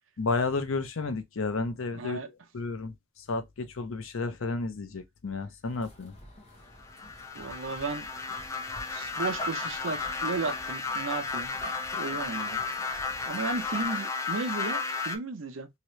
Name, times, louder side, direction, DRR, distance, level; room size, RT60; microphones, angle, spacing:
voice 1, 0.2-2.2 2.5-6.2, left 3 dB, 70° left, 0.6 m, -32 dB
voice 2, 1.9-2.3 7.3-8.1 8.9-11.5 11.9-15.7, right 4 dB, 65° right, 0.6 m, -35 dB
sound 1, 5.6-13.9, left 2 dB, 30° left, 1.0 m, -45 dB
sound 2, 6.8-15.2, left 4 dB, 15° left, 0.3 m, -33 dB
2.9 x 2.8 x 3.1 m
head